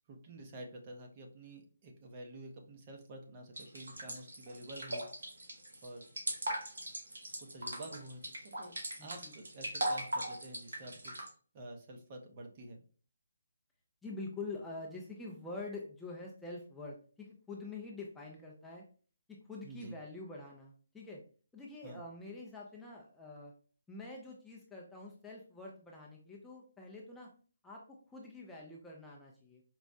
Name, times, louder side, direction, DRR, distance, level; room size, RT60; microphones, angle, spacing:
voice 1, 0.1-5.1 5.8-6.0 7.4-8.7 9.0-11.1 11.5-12.8 19.6-20.0 21.8-22.0, right 1 dB, 30° right, 2 dB, 0.7 m, -49 dB
sound 1, 3.6-11.3, right 1 dB, 70° right, 1.3 m, -39 dB
voice 2, 9.0-9.3 14.0-18.8 19.3-21.2 21.5-23.5 23.9-27.3 27.6-29.6, left 3 dB, 5° left, -3 dB, 0.4 m, -46 dB
4.5 x 2.0 x 2.6 m, 0.40 s
figure-of-eight pair, 150°, 0 cm